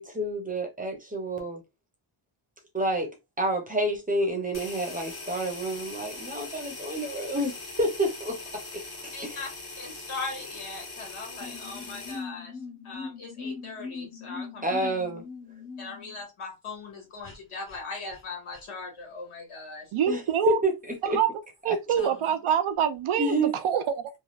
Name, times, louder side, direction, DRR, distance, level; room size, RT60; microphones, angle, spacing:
voice 1, 0.0-1.6 2.7-8.4 9.0-9.4 14.6-15.2 20.1-20.7 21.1-21.2 21.7-21.8 23.2-23.5, right 1 dB, 15° right, 0.7 m, -29 dB
sound 1, 4.5-12.2, left 3 dB, 50° left, 1.1 m, -41 dB
voice 2, 9.1-9.5 9.8-12.6 12.8-14.9 15.8-19.9, left 3 dB, 85° left, 1.8 m, -39 dB
sound 2, 11.4-16.2 17.2-17.4 17.7-17.8 18.1-18.2 18.5-18.6 22.0-22.5, left 4 dB, 25° left, 0.7 m, -41 dB
voice 3, 19.9-20.6 21.0-21.3 21.6-24.1, right 8 dB, 80° right, 0.6 m, -25 dB
3.2 x 2.3 x 2.3 m
wide cardioid pair, 170°, 49 cm